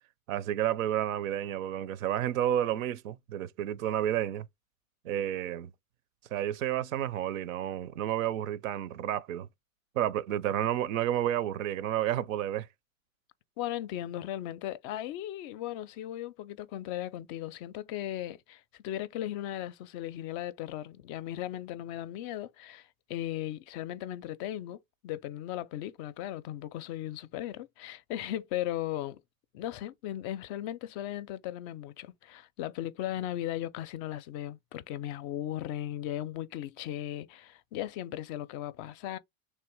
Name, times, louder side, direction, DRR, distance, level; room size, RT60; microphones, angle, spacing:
voice 1, 0.3-4.5 5.0-5.7 6.3-9.5 9.9-12.7, right 11 dB, 75° right, 0.6 m, -31 dB
voice 2, 13.6-29.2 29.5-39.2, left 13 dB, 45° left, 0.5 m, -37 dB
3.3 x 2.9 x 4.6 m
hypercardioid pair, 105°, 41 cm